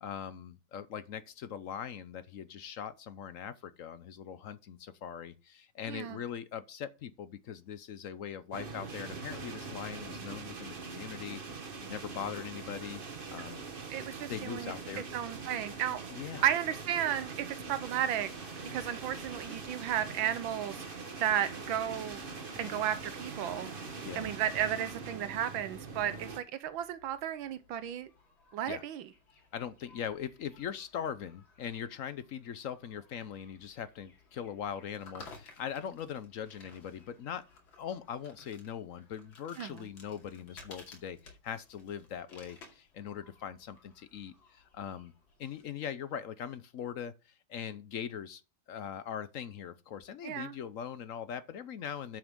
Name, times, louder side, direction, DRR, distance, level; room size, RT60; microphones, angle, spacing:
voice 1, 0.0-13.0 13.3-13.6 14.3-15.0 16.1-16.5 22.6-22.9 24.0-24.3 28.7-28.8 29.5-37.5 37.8-45.1 45.4-47.1 47.5-48.4 48.7-52.2, left 8 dB, 65° left, 0.8 m, -41 dB
voice 2, 5.9-6.2 13.4-13.5 13.9-14.7 15.1-16.0 16.4-18.3 18.7-20.8 21.2-22.2 22.6-23.7 24.2-28.1 28.5-29.1 39.6-39.9 50.2-50.5, right 10 dB, 85° right, 1.6 m, -33 dB
sound 1, 8.5-26.4, right 4 dB, 35° right, 1.1 m, -43 dB
sound 2, 17.8-24.9, left 4 dB, 50° left, 2.2 m, -56 dB
sound 3, 26.6-45.6, left 3 dB, 85° left, 3.1 m, -58 dB
11.0 x 7.6 x 3.7 m
omnidirectional pair, 2.1 m